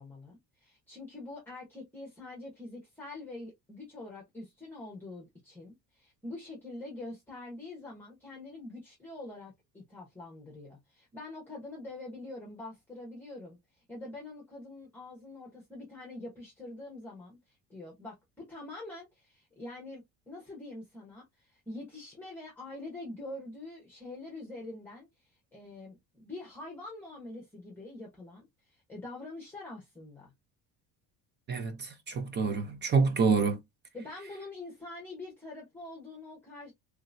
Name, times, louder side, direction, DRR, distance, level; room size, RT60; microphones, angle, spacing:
voice 1, 0.0-30.3 33.9-36.7, left 2 dB, 5° left, 1.0 m, -45 dB
voice 2, 31.5-33.6, right 4 dB, 30° right, 0.6 m, -27 dB
3.2 x 2.9 x 2.5 m
cardioid pair, 155°, 37 cm